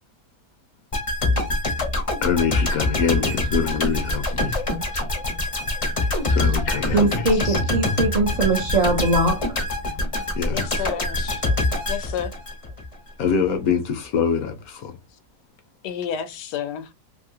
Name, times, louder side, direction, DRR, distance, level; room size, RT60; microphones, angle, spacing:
sound 1, 0.9-12.9 13.2-13.4, left 2 dB, 35° left, 0.5 m, -24 dB
voice 1, 2.2-4.5 6.2-7.5 10.4-10.6 13.2-14.9, left 6 dB, 70° left, 1.0 m, -24 dB
voice 2, 6.9-9.5, right 2 dB, 60° right, 0.4 m, -21 dB
voice 3, 10.5-11.4 11.9-12.3 15.8-16.9, left 8 dB, 90° left, 1.2 m, -31 dB
2.9 x 2.6 x 2.7 m
omnidirectional pair, 1.7 m